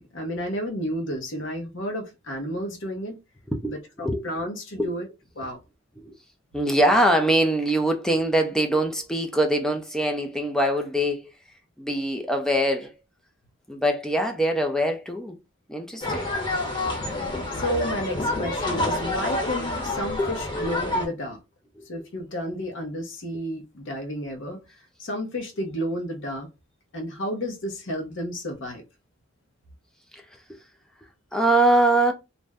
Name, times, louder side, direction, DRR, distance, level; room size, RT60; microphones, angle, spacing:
voice 1, 0.0-3.2 3.6-5.1 5.4-5.6 17.5-21.4 21.9-24.6 25.0-26.5 26.9-28.8, equal, 60° left, 0.8 m, -31 dB
voice 2, 3.5-4.2 4.8-4.9 6.0-6.1 6.5-11.3 11.8-12.9 13.7-15.4 15.7-16.3 20.2-20.3 21.8-21.9 31.3-32.1, right 1 dB, 5° left, 0.4 m, -23 dB
sound 1, 16.0-21.1, left 2 dB, 20° left, 0.9 m, -28 dB
2.5 x 2.1 x 3.4 m
head